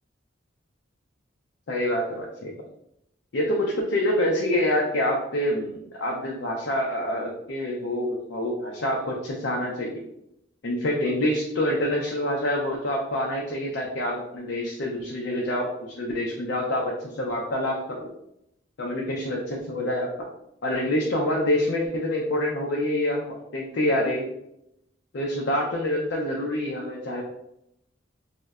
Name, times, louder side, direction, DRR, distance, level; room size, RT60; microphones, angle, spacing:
voice 1, 1.7-2.5 3.3-10.0 10.6-18.1 18.8-20.1 20.6-24.3 25.1-27.2, left 1 dB, 65° left, -2 dB, 0.4 m, -26 dB
3.7 x 2.1 x 2.3 m, 0.79 s
head